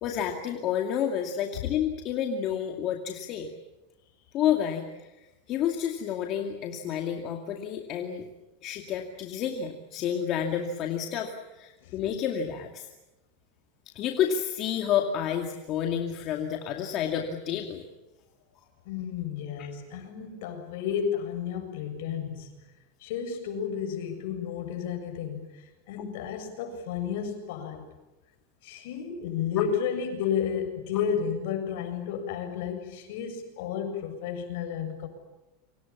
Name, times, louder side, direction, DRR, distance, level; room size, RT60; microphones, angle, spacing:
voice 1, 0.0-3.5 4.3-4.8 5.5-8.2 8.6-12.9 13.9-17.8 19.6-19.7 26.0-26.1, left 9 dB, 35° left, 3 dB, 2.3 m, -30 dB
voice 2, 18.9-22.5 23.0-27.8 28.6-35.1, left 8 dB, 65° left, 7 dB, 7.5 m, -32 dB
30.0 x 25.0 x 7.3 m, 1.0 s
supercardioid pair, 165°, 0 cm